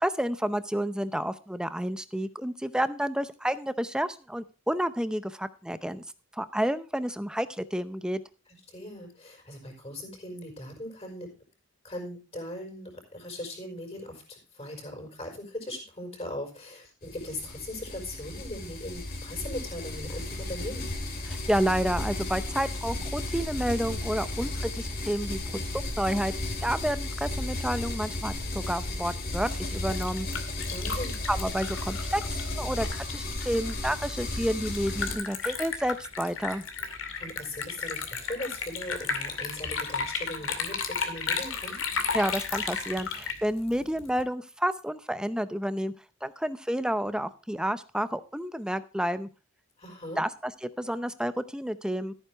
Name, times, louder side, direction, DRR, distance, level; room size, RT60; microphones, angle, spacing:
voice 1, 0.0-6.0 6.3-8.2 21.3-25.4 25.7-26.3 26.6-30.3 31.3-36.6 42.1-45.9 46.2-49.3 50.2-52.1, equal, 5° right, 13 dB, 0.6 m, -30 dB
voice 2, 8.7-11.3 11.8-20.9 30.7-31.2 37.2-41.8 49.8-50.2, left 1 dB, 30° left, 2 dB, 5.2 m, -39 dB
sound 1, 17.0-35.2, left 2 dB, 45° left, 2.9 m, -34 dB
Liquid, 29.6-44.2, left 5 dB, 70° left, 2.3 m, -34 dB
14.0 x 9.2 x 3.4 m, 0.34 s
head